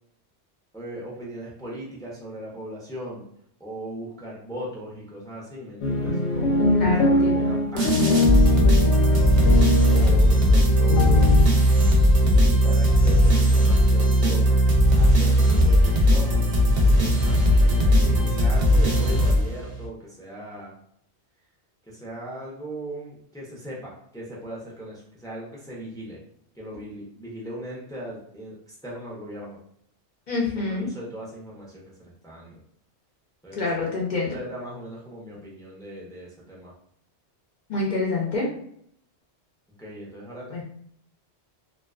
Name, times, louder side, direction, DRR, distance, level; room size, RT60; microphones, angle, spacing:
voice 1, 0.7-3.2 3.6-9.2 9.5-9.6 9.9-11.3 12.2-14.6 15.0-20.7 21.8-26.2 26.5-29.6 30.6-32.6 33.4-33.6 34.3-36.7 39.8-40.6, right 1 dB, 5° left, -5 dB, 0.4 m, -38 dB
sound 1, 5.8-11.4, left 3 dB, 85° left, 0.9 m, -23 dB
voice 2, 6.7-7.5 30.3-30.9 33.5-34.4 37.7-38.5 40.5-40.6, left 3 dB, 55° left, -2 dB, 0.6 m, -27 dB
sound 2, 7.8-19.9, equal, 50° right, 0.6 m, -18 dB
2.4 x 2.2 x 2.3 m, 0.69 s
omnidirectional pair, 1.1 m